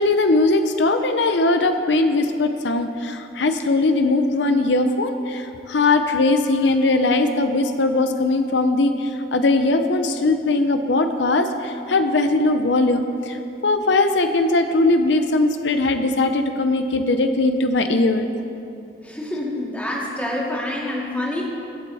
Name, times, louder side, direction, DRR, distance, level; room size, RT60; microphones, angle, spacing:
voice 1, 0.0-18.3, left 2 dB, 85° left, 7 dB, 0.7 m, -20 dB
voice 2, 19.0-21.4, left 1 dB, 10° left, -5 dB, 2.2 m, -27 dB
23.0 x 7.7 x 4.2 m, 2.8 s
head